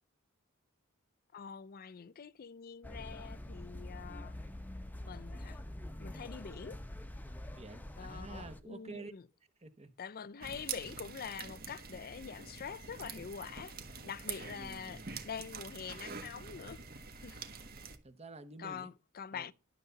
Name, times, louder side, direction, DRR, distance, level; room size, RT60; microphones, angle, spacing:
voice 1, 1.3-4.3 5.0-5.6 6.0-6.8 8.0-9.3 10.0-16.8 17.2-17.5 18.6-19.5, left 6 dB, 45° left, 0.5 m, -45 dB
sound 1, 2.8-8.6, left 1 dB, 10° left, 0.7 m, -45 dB
voice 2, 7.6-9.1 9.6-9.9 14.5-15.2 18.0-18.9 19.3-19.5, right 3 dB, 30° right, 1.0 m, -49 dB
sound 2, 10.4-18.0, right 5 dB, 45° right, 1.3 m, -46 dB
11.5 x 6.8 x 3.9 m
head